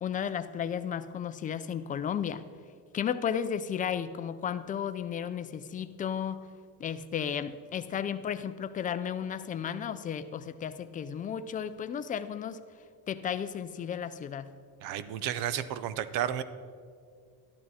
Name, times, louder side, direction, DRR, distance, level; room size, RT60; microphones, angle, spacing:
voice 1, 0.0-2.4 2.9-6.5 6.8-12.6 13.1-14.5, left 8 dB, 25° left, 11 dB, 0.3 m, -34 dB
voice 2, 14.8-16.4, right 10 dB, 75° right, 14 dB, 0.7 m, -32 dB
12.5 x 12.0 x 4.2 m, 2.1 s
cardioid pair, 145°, 38 cm